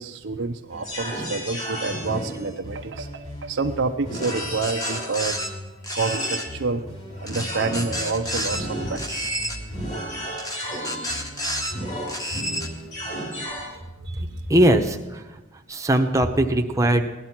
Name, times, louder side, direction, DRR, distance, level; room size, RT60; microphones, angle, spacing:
voice 1, 0.0-5.4 5.9-6.9 7.2-9.5 10.2-10.8 11.7-11.8 12.7-12.8 14.0-14.4, right 4 dB, 65° right, 5 dB, 0.6 m, -29 dB
sound 1, 0.7-13.7, equal, 35° left, 4.8 m, -33 dB
sound 2, 4.1-5.5 5.8-6.5 7.3-8.6 9.0-9.6 10.4-11.7 12.1-12.7, equal, 20° left, 1.2 m, -30 dB
voice 2, 14.5-15.2 15.7-17.0, right 1 dB, 15° right, 4 dB, 0.9 m, -20 dB
17.0 x 11.0 x 5.9 m, 1.1 s
head